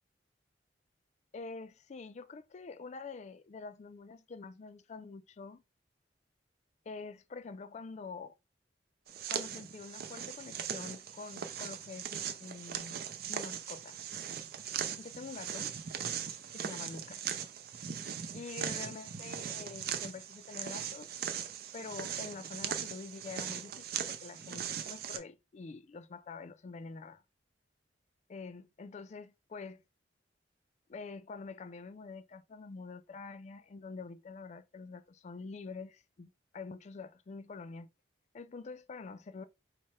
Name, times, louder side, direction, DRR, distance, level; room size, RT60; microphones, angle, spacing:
voice 1, 1.3-5.6 6.9-8.3 9.3-13.0 13.3-14.0 15.0-15.7 16.5-17.5 18.3-21.3 21.7-27.2 28.3-29.8 30.9-37.9 38.3-39.4, left 4 dB, 40° left, 0.3 m, -46 dB
sound 1, 9.1-25.2, right 8 dB, 55° right, 0.5 m, -39 dB
4.6 x 2.1 x 4.3 m
head